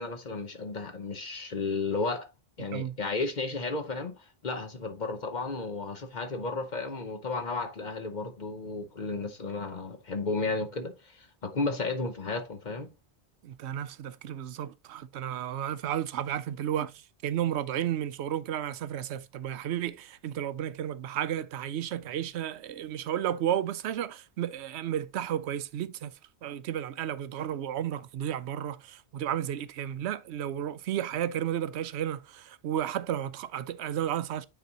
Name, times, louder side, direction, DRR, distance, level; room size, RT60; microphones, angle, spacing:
voice 1, 0.0-2.3 2.6-12.9, left 3 dB, 45° left, 1.0 m, -33 dB
voice 2, 13.4-26.1 26.4-34.4, right 10 dB, 75° right, 0.8 m, -33 dB
9.2 x 4.1 x 2.9 m
omnidirectional pair, 1.1 m